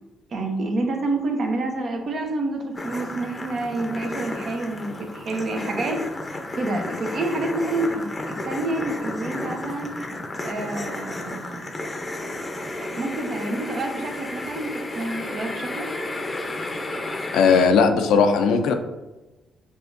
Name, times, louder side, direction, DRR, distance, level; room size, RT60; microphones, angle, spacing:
voice 1, 0.3-10.0 10.4-11.7 12.8-15.9, right 2 dB, 55° right, 3 dB, 0.8 m, -28 dB
sound 1, 2.7-17.7, left 2 dB, 25° left, 0.6 m, -32 dB
voice 2, 17.3-18.7, left 5 dB, 85° left, 6 dB, 0.4 m, -17 dB
6.6 x 2.5 x 2.5 m, 1.1 s
cardioid pair, 90°, 0 cm